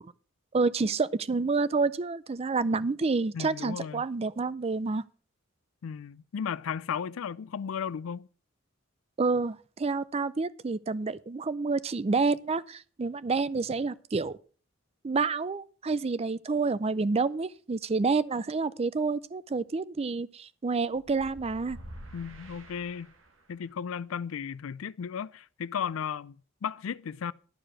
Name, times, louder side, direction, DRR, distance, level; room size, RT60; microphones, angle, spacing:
voice 1, 0.5-5.0 9.2-14.4 15.0-21.8, right 4 dB, 30° right, 0.4 m, -28 dB
voice 2, 3.3-4.0 5.8-8.3 22.1-23.1 23.5-26.4 26.6-27.3, left 7 dB, 85° left, 0.4 m, -35 dB
sound 1, 20.9-23.6, equal, 75° right, 1.8 m, -47 dB
12.0 x 4.7 x 7.5 m
head